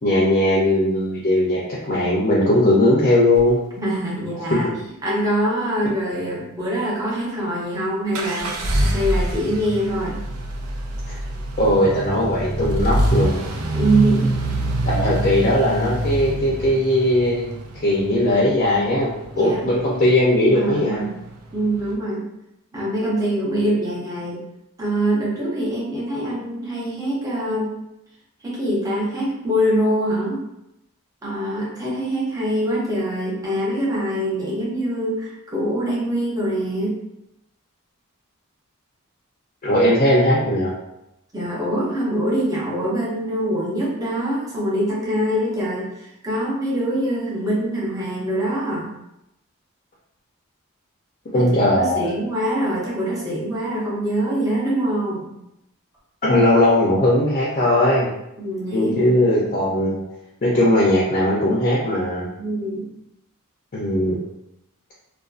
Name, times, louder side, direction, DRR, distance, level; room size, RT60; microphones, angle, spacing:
voice 1, 0.0-1.6 1.9-3.6 4.5-4.6 11.1-11.2 11.6-13.4 14.9-17.5 17.8-21.0 39.6-40.7 51.3-52.1 56.2-58.1 58.7-60.0 60.4-62.3 63.7-64.2, left 1 dB, 40° left, -5 dB, 0.4 m, -18 dB
sound 1, 3.3-3.5 8.1-21.9, right 1 dB, 85° right, 0.4 m, -26 dB
voice 2, 3.8-4.7 5.0-10.2 13.7-14.3 14.7-14.8 19.3-19.7 20.5-21.1 21.5-22.3 22.7-24.4 24.8-27.7 28.4-30.4 31.2-37.0 41.3-48.9 51.3-55.3 58.4-59.3 62.4-62.9, right 1 dB, 15° right, -5 dB, 0.6 m, -24 dB
2.4 x 2.2 x 2.3 m, 0.85 s
head